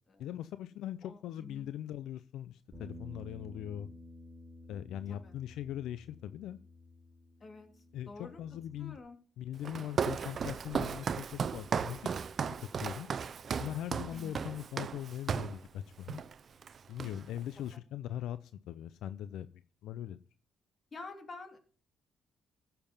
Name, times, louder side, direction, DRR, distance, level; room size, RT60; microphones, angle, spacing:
voice 1, 0.2-3.9 4.7-6.6 7.9-9.0 9.4-12.1 12.5-13.1 13.6-16.2 16.9-19.5 19.8-20.2, left 11 dB, 85° left, 13 dB, 0.5 m, -41 dB
voice 2, 1.0-1.7 5.1-5.3 7.4-8.4 8.8-9.2 13.5-13.8 14.1-14.5 17.6-17.8 20.9-21.6, left 3 dB, 40° left, 5 dB, 3.0 m, -49 dB
Bass guitar, 2.7-9.0, left 1 dB, 20° right, 4.1 m, -52 dB
Walk footsteps, 9.6-15.6 16.1-16.3 16.6-17.4, right 6 dB, 50° right, 0.6 m, -35 dB
15.0 x 6.9 x 5.4 m, 0.41 s
cardioid pair, 90°, 0 cm